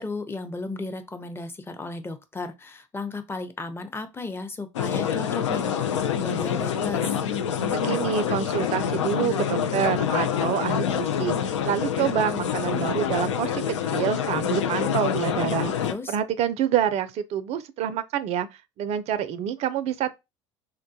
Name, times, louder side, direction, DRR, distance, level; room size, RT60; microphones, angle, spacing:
voice 1, 0.0-7.1 15.8-16.2, left 3 dB, 15° left, 0.7 m, -35 dB
sound 1, 4.7-15.9, left 8 dB, 85° left, 0.5 m, -26 dB
voice 2, 7.7-18.5 18.8-20.1, right 9 dB, 45° right, 0.4 m, -27 dB
3.7 x 2.2 x 2.7 m
hypercardioid pair, 75°, 15 cm